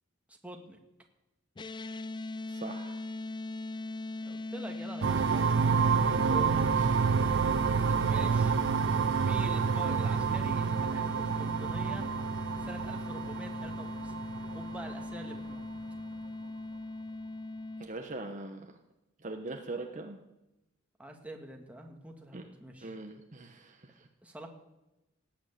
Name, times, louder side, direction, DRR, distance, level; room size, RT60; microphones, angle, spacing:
voice 1, 0.3-0.8 4.2-5.6 8.0-8.6 9.2-12.2 12.5-15.6 21.0-22.9 24.2-24.5, right 1 dB, 5° right, 2 dB, 1.8 m, -46 dB
sound 1, 1.6-17.9, left 2 dB, 25° left, 0.4 m, -40 dB
voice 2, 2.5-3.0 6.1-7.3 7.8-8.0 17.8-18.7 19.2-20.2 22.3-22.4 22.8-23.9, right 2 dB, 40° right, 4 dB, 1.1 m, -41 dB
sound 2, 5.0-15.5, right 6 dB, 65° right, 0.5 m, -29 dB
18.0 x 8.3 x 8.1 m, 0.96 s
head